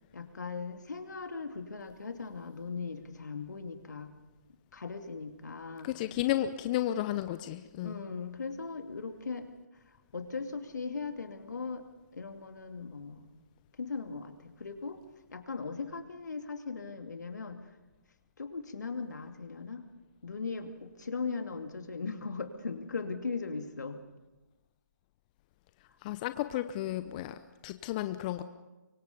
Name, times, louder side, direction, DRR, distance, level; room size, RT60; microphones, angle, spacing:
voice 1, 0.1-4.1 4.7-5.9 7.8-9.5 10.1-11.8 12.1-13.3 13.8-15.0 15.3-17.6 18.4-19.8 20.2-24.0, left 4 dB, 70° left, 6 dB, 2.5 m, -38 dB
voice 2, 5.8-8.0 26.0-27.3 27.6-28.4, left 13 dB, 25° left, 11 dB, 0.7 m, -32 dB
24.0 x 24.0 x 5.3 m, 1.1 s
figure-of-eight pair, 145°, 10 cm